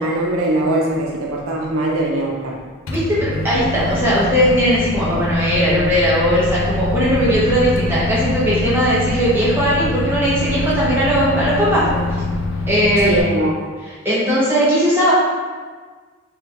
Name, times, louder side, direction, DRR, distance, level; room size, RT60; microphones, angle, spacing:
voice 1, 0.0-2.6 13.0-13.5, right 1 dB, 80° right, -2 dB, 0.6 m, -21 dB
Microwave oven, 2.9-13.2, left 2 dB, 65° left, 0.4 m, -24 dB
voice 2, 2.9-12.2 12.7-13.2 14.0-15.1, equal, 10° right, -9 dB, 0.7 m, -18 dB
3.3 x 2.2 x 3.1 m, 1.5 s
head